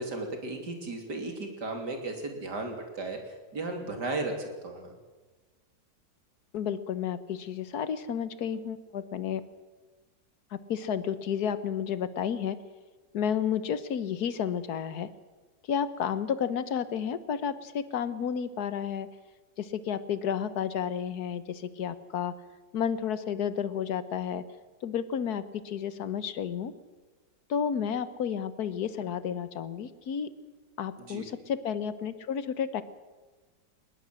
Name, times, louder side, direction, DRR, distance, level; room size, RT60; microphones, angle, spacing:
voice 1, 0.0-3.2 3.5-4.9 31.0-31.3, right 2 dB, 60° right, 4 dB, 3.8 m, -35 dB
voice 2, 6.5-9.4 10.5-12.6 13.1-15.1 15.7-19.1 19.6-22.3 22.7-24.4 24.8-26.7 27.5-30.3 30.8-32.8, left 8 dB, 60° left, 14 dB, 1.5 m, -31 dB
20.0 x 20.0 x 7.7 m, 1.3 s
omnidirectional pair, 2.0 m